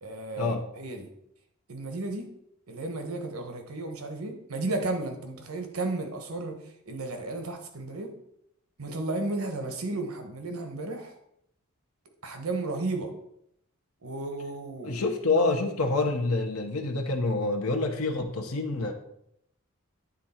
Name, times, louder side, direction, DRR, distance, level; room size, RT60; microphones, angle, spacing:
voice 1, 0.0-1.1 1.7-2.3 2.7-6.6 6.8-8.1 8.8-11.2 12.2-13.1 14.0-15.0, right 2 dB, 75° right, 6 dB, 1.1 m, -33 dB
voice 2, 14.8-18.9, left 3 dB, 85° left, 3 dB, 0.8 m, -27 dB
9.3 x 3.7 x 4.3 m, 0.76 s
head